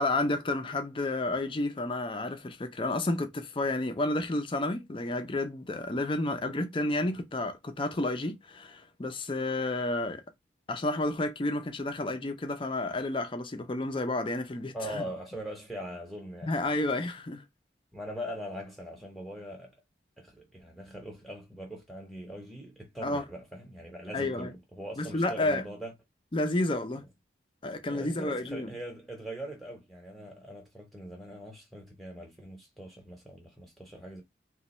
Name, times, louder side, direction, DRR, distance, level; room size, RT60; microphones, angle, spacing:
voice 1, 0.0-10.2 10.7-15.0 16.4-17.4 23.0-23.2 24.1-24.5 25.0-25.6 26.3-27.1 27.6-28.7, left 2 dB, 30° left, 0.5 m, -31 dB
voice 2, 14.7-16.6 17.9-19.7 20.2-25.9 27.9-34.2, equal, ahead, 0.8 m, -41 dB
2.9 x 2.3 x 4.1 m
head